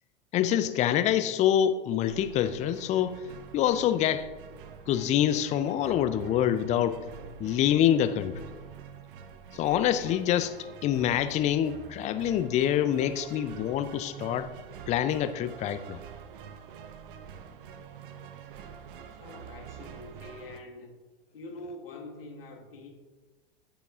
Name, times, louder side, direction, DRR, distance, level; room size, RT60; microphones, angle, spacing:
voice 1, 0.3-3.2 3.5-4.3 4.9-7.0 7.4-8.3 9.5-10.5 10.8-14.5 14.9-16.0, left 10 dB, 25° left, 12 dB, 0.5 m, -26 dB
sound 1, 2.0-20.6, right 7 dB, 60° right, 0.8 m, -46 dB
voice 2, 19.0-21.0 21.3-22.9, left 2 dB, 70° left, 0 dB, 1.7 m, -45 dB
14.5 x 7.0 x 2.4 m, 1.3 s
figure-of-eight pair, 90°, 30 cm